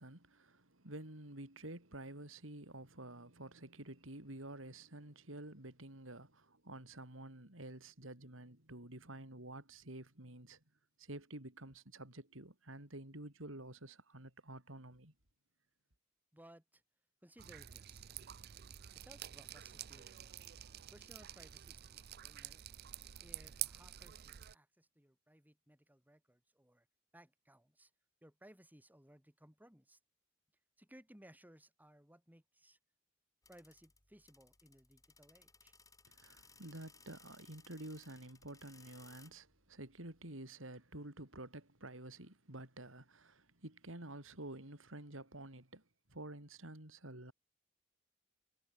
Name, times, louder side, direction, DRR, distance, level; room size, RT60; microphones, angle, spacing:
voice 1, 0.0-10.6 11.0-15.1 36.1-45.8 46.1-47.3, right 1 dB, 75° right, 4.8 m, -50 dB
voice 2, 16.3-16.8 17.2-18.1 18.9-20.3 20.9-22.7 23.2-26.9 27.1-27.9 28.2-30.0 30.8-32.8 33.5-35.7, right 1 dB, 10° right, 4.7 m, -62 dB
Drip, 17.4-24.6, right 13 dB, 50° right, 0.6 m, -48 dB
sound 1, 33.4-40.3, left 4 dB, 15° left, 5.8 m, -64 dB
head